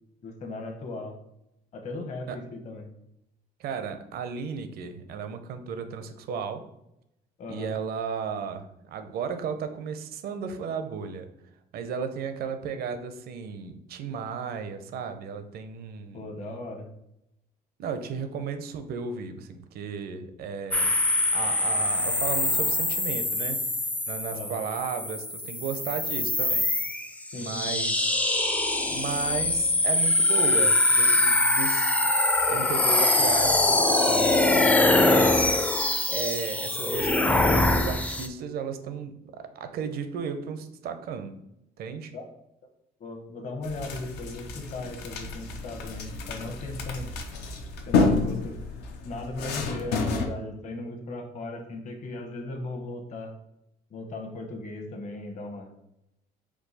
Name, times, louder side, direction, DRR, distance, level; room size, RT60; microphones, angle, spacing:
voice 1, 0.2-1.2 1.7-2.9 7.4-7.7 16.1-16.9 24.3-24.6 27.3-27.8 42.1-42.2 43.0-47.1 47.8-48.6 49.0-53.3 53.9-55.7, left 2 dB, 45° left, 3 dB, 1.0 m, -37 dB
voice 2, 3.6-6.6 7.5-11.3 11.7-16.6 17.8-20.9 21.3-23.6 24.1-26.6 27.3-28.2 28.9-31.9 32.5-35.4 36.1-41.4 41.8-42.1, right 6 dB, 65° right, 9 dB, 0.6 m, -34 dB
sound 1, 20.7-38.3, left 2 dB, 10° left, 0.4 m, -23 dB
sound 2, 43.6-50.3, left 3 dB, 80° left, 0.7 m, -29 dB
4.7 x 2.3 x 4.0 m, 0.82 s
cardioid pair, 110°, 17 cm